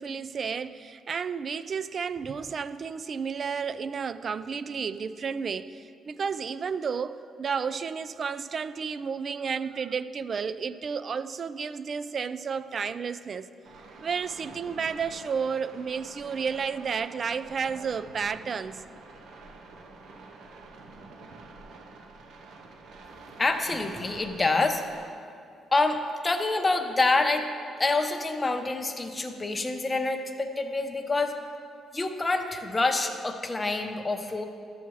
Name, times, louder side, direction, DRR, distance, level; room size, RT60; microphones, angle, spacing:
voice 1, 0.0-13.5 14.0-18.8, right 6 dB, 45° right, 14 dB, 0.3 m, -32 dB
sound 1, 13.6-25.1, right 3 dB, 75° right, 0.8 m, -48 dB
voice 2, 23.4-24.8 25.7-27.5 27.8-31.4 31.9-34.4, left 3 dB, 20° left, 5 dB, 0.7 m, -27 dB
13.0 x 7.0 x 3.1 m, 2.4 s
cardioid pair, 90°, 0 cm